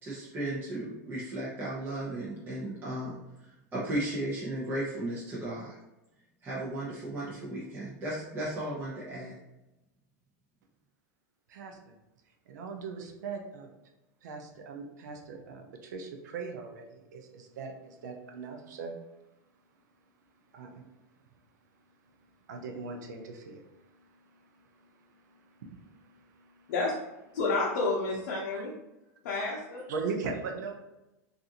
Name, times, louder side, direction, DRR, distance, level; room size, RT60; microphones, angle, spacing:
voice 1, 0.0-5.8 6.4-9.3, right 1 dB, 25° right, -7 dB, 0.7 m, -35 dB
voice 2, 11.5-12.0 12.5-13.7 14.2-19.0 20.5-20.8 22.5-26.7 28.5-28.7 29.9-30.7, right 4 dB, 90° right, 3 dB, 0.5 m, -40 dB
voice 3, 27.3-28.7 29.2-29.8, left 3 dB, 80° left, -3 dB, 0.6 m, -30 dB
2.5 x 2.4 x 2.7 m, 0.96 s
supercardioid pair, 130°, 9 cm